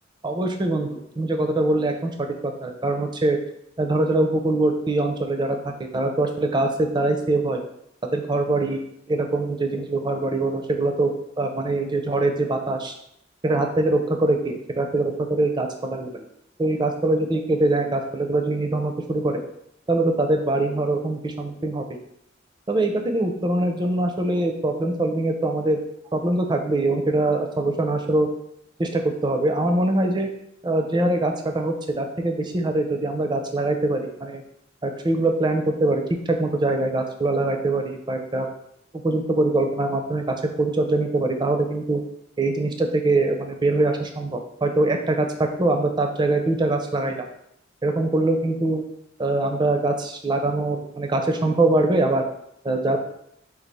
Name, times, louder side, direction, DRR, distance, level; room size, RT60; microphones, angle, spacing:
voice 1, 0.2-3.4 3.8-7.6 8.1-12.9 13.4-16.2 16.6-19.4 19.9-21.8 22.7-25.8 26.1-28.3 28.8-30.3 30.6-34.4 34.8-36.0 36.3-38.5 39.0-42.0 42.4-47.2 47.8-48.8 49.2-52.2 52.6-53.0, right 2 dB, 25° right, 4 dB, 0.5 m, -23 dB
4.0 x 2.4 x 4.6 m, 0.75 s
head